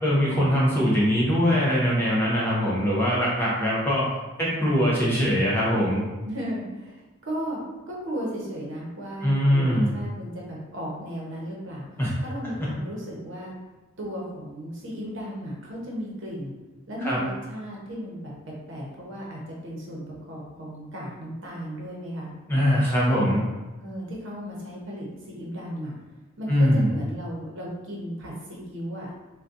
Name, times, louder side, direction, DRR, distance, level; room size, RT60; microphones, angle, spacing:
voice 1, 0.0-4.1 4.4-6.0 9.2-9.9 12.0-12.1 17.0-17.2 22.5-23.4 26.5-26.9, equal, 10° left, -6 dB, 0.6 m, -22 dB
voice 2, 6.2-7.6 7.9-13.5 14.0-16.5 16.9-22.3 23.1-23.4 23.8-25.9 26.4-29.1, equal, 60° right, -4 dB, 0.8 m, -35 dB
3.9 x 2.2 x 2.5 m, 1.2 s
head